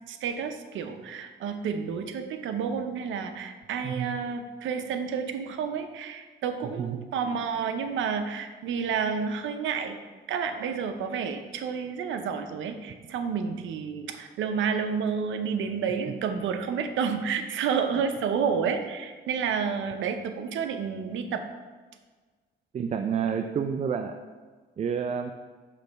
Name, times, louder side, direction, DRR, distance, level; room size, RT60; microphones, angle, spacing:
voice 1, 0.1-10.0 10.3-21.5, right 6 dB, 75° right, 7 dB, 0.7 m, -30 dB
voice 2, 3.8-4.2 6.8-7.0 22.7-24.2 24.8-25.3, right 7 dB, 35° right, 6 dB, 0.4 m, -29 dB
6.3 x 3.3 x 5.2 m, 1.4 s
cardioid pair, 90°, 20 cm